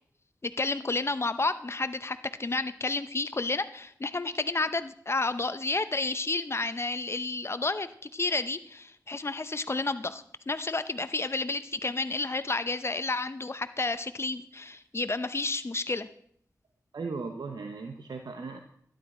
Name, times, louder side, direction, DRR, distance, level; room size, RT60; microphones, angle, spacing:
voice 1, 0.4-16.1, left 3 dB, 40° left, 12 dB, 0.7 m, -31 dB
voice 2, 16.9-18.6, right 4 dB, 80° right, 4 dB, 0.9 m, -37 dB
12.0 x 10.5 x 4.3 m, 0.65 s
cardioid pair, 45°, 7 cm